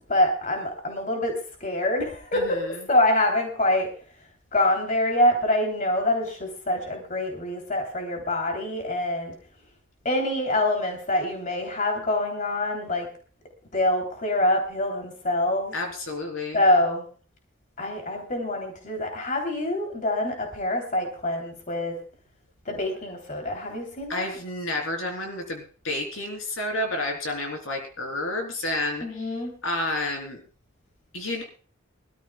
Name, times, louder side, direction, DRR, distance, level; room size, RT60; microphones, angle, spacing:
voice 1, 0.1-3.9 4.5-9.3 10.0-13.1 13.7-15.7 16.5-17.1 17.8-21.9 22.6-24.4 29.0-29.5, left 1 dB, 40° left, 2 dB, 3.1 m, -25 dB
voice 2, 2.3-2.7 15.7-16.6 24.1-29.3 29.6-30.4 31.1-31.4, left 2 dB, 80° left, 2 dB, 3.6 m, -30 dB
24.0 x 13.5 x 2.3 m, 0.39 s
head